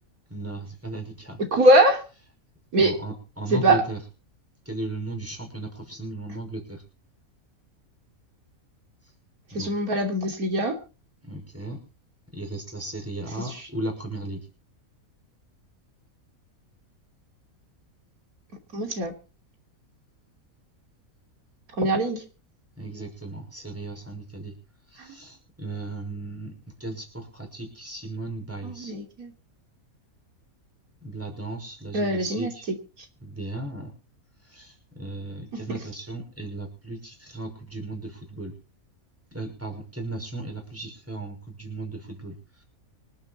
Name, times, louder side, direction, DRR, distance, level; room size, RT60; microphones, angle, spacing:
voice 1, 0.3-1.4 2.8-4.0 4.7-6.8 9.5-9.7 11.2-11.8 12.3-14.5 22.8-24.6 24.9-28.9 31.0-32.6 33.2-33.9 34.4-38.5 39.3-42.4, right 2 dB, 10° right, 2 dB, 5.8 m, -36 dB
voice 2, 1.5-2.0 2.7-2.9 3.5-3.8 9.5-10.8 13.4-13.6 18.7-19.1 21.8-22.2 25.0-25.1 28.6-29.3 31.9-32.5, right 1 dB, 85° right, 4 dB, 3.6 m, -22 dB
26.0 x 8.7 x 4.3 m, 0.34 s
omnidirectional pair, 1.5 m